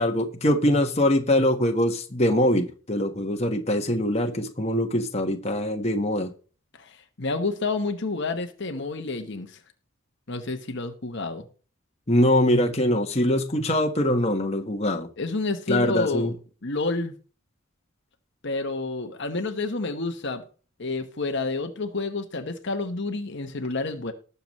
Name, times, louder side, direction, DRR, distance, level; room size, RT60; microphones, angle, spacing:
voice 1, 0.0-6.3 12.1-15.1 15.7-16.3, left 1 dB, 30° left, 1.4 m, -23 dB
voice 2, 6.8-9.6 10.3-11.5 15.2-16.3 16.6-17.1 18.4-20.4 20.8-24.1, left 3 dB, 55° left, 1.2 m, -29 dB
19.5 x 7.0 x 3.2 m
head